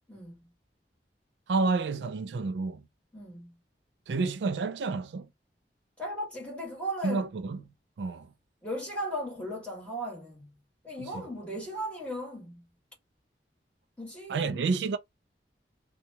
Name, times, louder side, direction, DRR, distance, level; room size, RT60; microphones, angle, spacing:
voice 1, 1.5-2.8 4.1-5.3 7.0-7.6 8.0-8.3 11.0-11.2 14.3-15.0, right 4 dB, 85° right, 0.4 m, -29 dB
voice 2, 3.1-3.5 6.0-7.2 8.6-10.6 10.8-12.6 14.0-14.6, equal, 5° left, 1.4 m, -37 dB
2.8 x 2.3 x 2.7 m
head